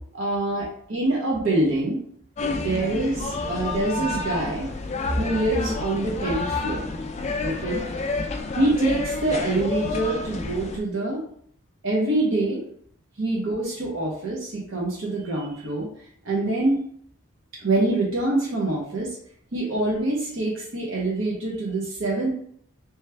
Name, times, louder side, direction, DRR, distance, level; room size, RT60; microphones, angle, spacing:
voice 1, 0.1-2.0 2.5-4.7 5.2-6.9 7.4-7.8 8.6-11.2 11.8-12.6 13.2-15.9 16.2-16.8 17.6-19.1 19.5-22.3, right 2 dB, 65° right, -4 dB, 0.9 m, -25 dB
sound 1, 2.4-10.8, left 3 dB, 30° left, 0.3 m, -29 dB
3.3 x 3.1 x 3.3 m, 0.62 s
head